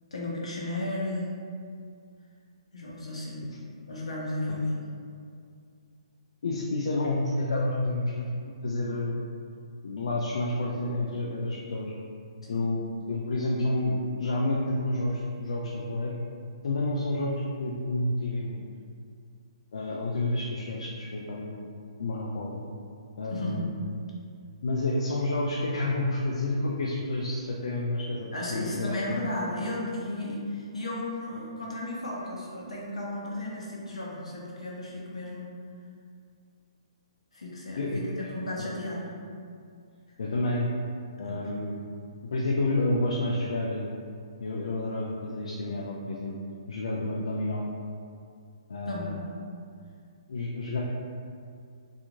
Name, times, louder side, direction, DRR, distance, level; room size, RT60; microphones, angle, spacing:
voice 1, 0.1-1.3 2.7-3.4 3.9-4.8 12.4-12.6 23.3-23.7 28.3-35.5 37.3-39.1 41.2-41.3 48.9-49.1, left 1 dB, 90° left, -4 dB, 0.7 m, -34 dB
voice 2, 6.4-8.3 8.6-9.2 9.8-11.9 12.5-12.8 13.1-16.2 16.6-17.3 17.6-18.6 19.7-21.7 22.0-22.6 23.2-23.7 24.6-29.2 37.8-38.0 38.6-38.7 40.2-40.7 41.2-41.8 42.3-43.9 44.4-46.3 46.7-47.6 48.7-49.2 50.3-50.8, left 2 dB, 75° left, -3 dB, 0.3 m, -29 dB
2.9 x 2.4 x 2.4 m, 2.3 s
hypercardioid pair, 145°, 3 cm